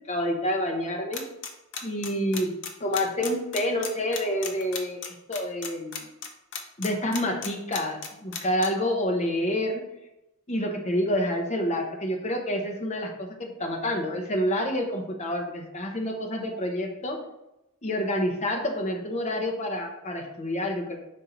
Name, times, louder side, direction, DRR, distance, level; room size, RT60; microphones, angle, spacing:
voice 1, 0.1-1.2 1.8-6.1 6.8-9.8 10.5-17.2 17.8-21.0, equal, 30° left, 1 dB, 1.0 m, -28 dB
sound 1, 1.1-8.7, left 7 dB, 55° left, 0.8 m, -34 dB
5.4 x 4.4 x 4.0 m, 0.90 s
head